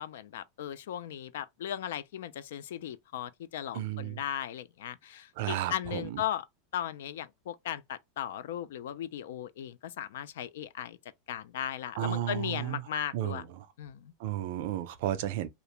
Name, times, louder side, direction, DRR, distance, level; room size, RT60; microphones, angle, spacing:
voice 1, 0.0-6.4 6.7-11.0 11.3-13.4 13.8-14.1, left 10 dB, 80° left, 0.3 m, -37 dB
voice 2, 3.7-4.2 5.4-6.2 12.0-12.8 13.1-13.7 14.2-15.5, right 12 dB, 55° right, 0.4 m, -33 dB
2.4 x 2.0 x 2.8 m
supercardioid pair, 165°, 0 cm